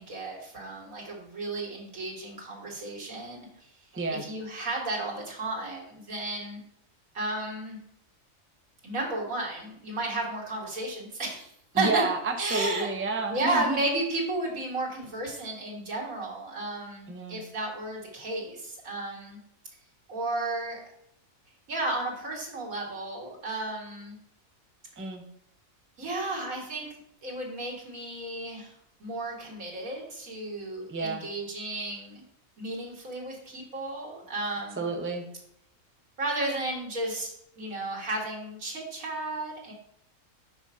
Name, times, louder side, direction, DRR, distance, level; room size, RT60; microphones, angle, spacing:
voice 1, 0.0-3.5 4.2-6.6 7.1-7.8 8.8-11.5 11.7-12.0 12.4-12.9 13.3-19.4 20.1-20.8 21.7-24.2 26.0-26.9 27.2-28.7 29.0-32.2 32.6-34.9 36.2-37.3 37.6-39.7, right 2 dB, 85° right, -2 dB, 2.5 m, -33 dB
voice 2, 3.9-4.2 11.7-13.8 17.1-17.4 25.0-25.2 30.9-31.2 34.8-35.2, right 3 dB, 15° right, 4 dB, 0.6 m, -30 dB
5.9 x 5.2 x 5.7 m, 0.72 s
omnidirectional pair, 1.4 m